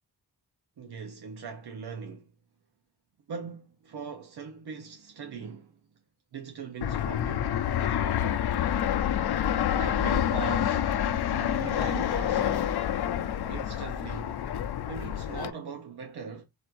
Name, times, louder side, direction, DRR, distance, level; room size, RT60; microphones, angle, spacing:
voice 1, 0.8-2.3 3.3-5.8 6.3-7.5 9.7-10.9 11.3-12.8 13.5-14.4 14.9-16.4, right 6 dB, 85° right, 0.9 m, -40 dB
Fixed-wing aircraft airplane, 6.8-15.5, left 10 dB, 90° left, 0.6 m, -28 dB
4.1 x 2.5 x 4.5 m
wide cardioid pair, 135°, 38 cm